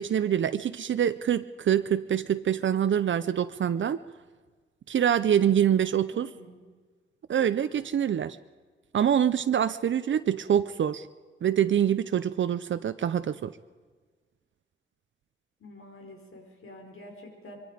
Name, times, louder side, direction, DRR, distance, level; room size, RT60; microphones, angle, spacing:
voice 1, 0.0-4.0 4.9-6.3 7.3-8.4 8.9-11.1 11.4-13.5, right 9 dB, 70° right, 11 dB, 0.6 m, -25 dB
voice 2, 6.1-6.6 15.6-17.6, left 1 dB, 85° left, 1 dB, 5.2 m, -47 dB
25.0 x 23.5 x 5.1 m, 1.4 s
wide cardioid pair, 135°, 21 cm